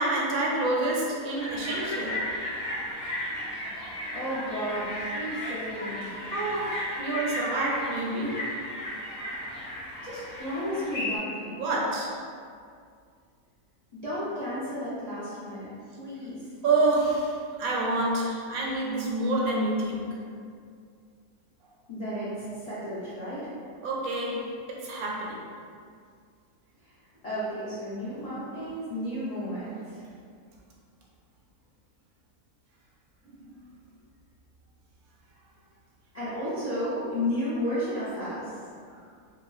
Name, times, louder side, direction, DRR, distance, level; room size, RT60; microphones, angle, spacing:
voice 1, 0.0-2.3 6.3-8.5 11.6-12.2 16.6-20.2 23.8-25.4 33.2-33.5, right 2 dB, 75° right, -3 dB, 1.0 m, -28 dB
sound 1, 1.4-11.2, left 1 dB, 55° left, 0.7 m, -35 dB
voice 2, 4.1-6.1 10.0-11.6 13.9-15.7 16.0-16.5 21.9-23.5 26.8-26.9 27.2-30.1 36.1-38.6, equal, 70° left, -11 dB, 0.3 m, -33 dB
3.0 x 2.5 x 2.3 m, 2.2 s
omnidirectional pair, 1.6 m